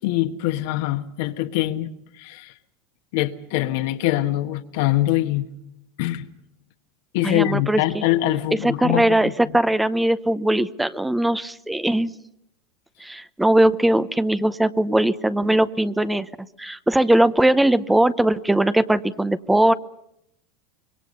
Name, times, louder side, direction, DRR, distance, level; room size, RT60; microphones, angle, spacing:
voice 1, 0.0-1.9 2.2-2.5 3.1-5.5 6.0-6.3 7.1-9.6, left 15 dB, 65° left, 1.5 m, -23 dB
voice 2, 7.2-8.0 8.6-12.1 13.0-16.3 16.6-19.7, right 1 dB, 5° right, 0.8 m, -20 dB
25.5 x 22.5 x 5.5 m
hypercardioid pair, 100°, 0 cm